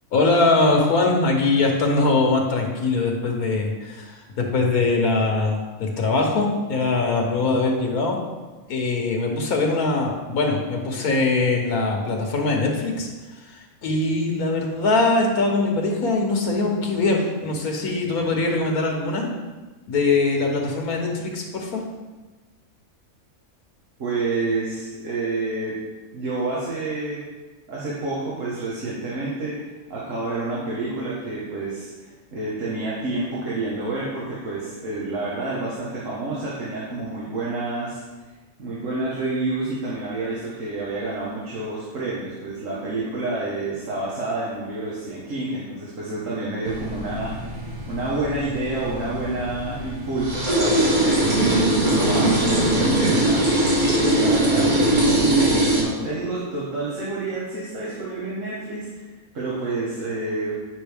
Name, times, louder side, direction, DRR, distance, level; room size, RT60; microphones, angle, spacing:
voice 1, 0.1-8.2 8.7-13.1 13.4-19.3 19.9-21.8, left 3 dB, 90° left, 1 dB, 1.6 m, -22 dB
voice 2, 24.0-25.8 26.1-27.2 27.7-38.3 38.6-60.5, right 2 dB, 60° right, -6 dB, 1.7 m, -29 dB
sound 1, 46.6-55.8, right 1 dB, 85° right, 2.2 m, -21 dB
9.2 x 5.5 x 3.5 m, 1.2 s
omnidirectional pair, 1.5 m